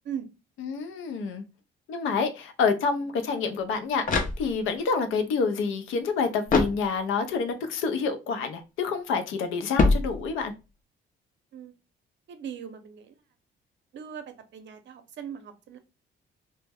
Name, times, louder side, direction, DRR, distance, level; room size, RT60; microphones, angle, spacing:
voice 1, 0.6-1.4 1.9-10.5, left 5 dB, 85° left, 0.5 m, -28 dB
sound 1, 3.6-4.9 6.5-7.4 9.7-10.7, left 3 dB, 45° left, 0.6 m, -26 dB
voice 2, 12.3-13.1 13.9-14.2 14.5-15.8, right 8 dB, 65° right, 0.6 m, -39 dB
2.1 x 2.1 x 3.3 m
cardioid pair, 90°, 20 cm